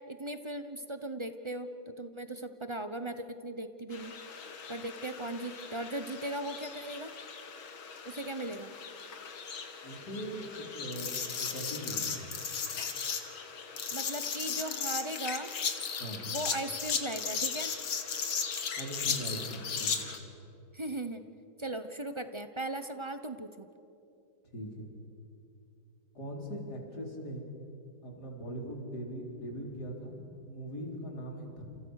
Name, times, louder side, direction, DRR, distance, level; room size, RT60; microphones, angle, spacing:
voice 1, 0.1-4.1 4.7-7.1 8.0-8.7 13.9-15.5 16.2-17.7 20.7-21.2 21.6-23.7, right 1 dB, 35° right, 9 dB, 0.4 m, -38 dB
sound 1, 3.9-20.2, left 6 dB, 90° left, 2.6 m, -37 dB
voice 2, 9.8-12.2 16.0-16.3 18.8-20.1 24.5-24.9 26.1-27.5 28.0-31.6, equal, 50° left, 0 dB, 5.0 m, -40 dB
30.0 x 29.5 x 6.6 m, 2.7 s
omnidirectional pair, 2.2 m